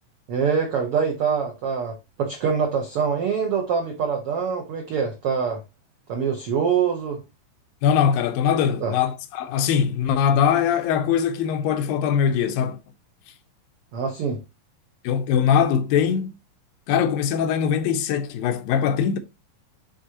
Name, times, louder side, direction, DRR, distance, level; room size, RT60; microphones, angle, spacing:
voice 1, 0.3-5.6 6.1-7.2 8.8-8.9 13.9-14.4, right 6 dB, 80° right, 1.3 m, -24 dB
voice 2, 7.8-12.8 15.0-16.3 16.9-19.2, left 8 dB, 85° left, 2.5 m, -21 dB
9.4 x 3.8 x 2.8 m
omnidirectional pair, 4.1 m